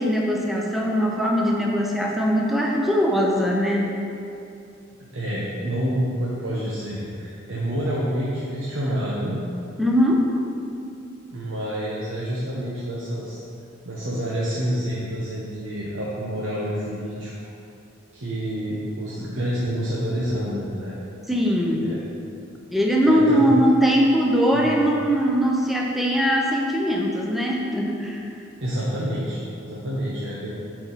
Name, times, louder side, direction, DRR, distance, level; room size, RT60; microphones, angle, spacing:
voice 1, 0.0-3.9 9.8-10.3 21.3-21.9 22.7-28.3, equal, ahead, -2 dB, 0.7 m, -21 dB
voice 2, 5.1-9.4 11.3-13.4 13.8-17.3 18.1-21.0 21.8-22.0 23.1-23.6 24.5-24.7 28.6-30.5, equal, 80° right, -6 dB, 1.0 m, -28 dB
9.6 x 4.6 x 4.1 m, 2.6 s
head